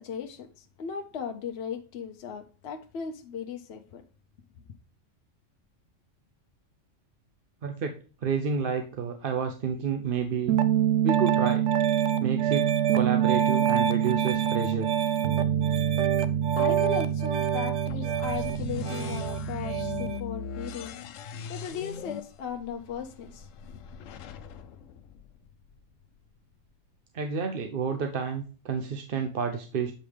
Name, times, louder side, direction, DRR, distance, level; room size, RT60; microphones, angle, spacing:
voice 1, 0.0-4.0 16.6-20.9 21.5-24.1, left 7 dB, 60° left, 0.9 m, -37 dB
voice 2, 7.6-7.9 8.2-10.5 11.0-11.7 12.2-14.9 27.1-29.9, right 6 dB, 50° right, 0.8 m, -30 dB
Piano, 10.5-20.2, right 9 dB, 80° right, 1.0 m, -25 dB
sound 1, 17.9-25.8, left 6 dB, 85° left, 1.0 m, -40 dB
7.7 x 5.3 x 3.2 m
omnidirectional pair, 1.3 m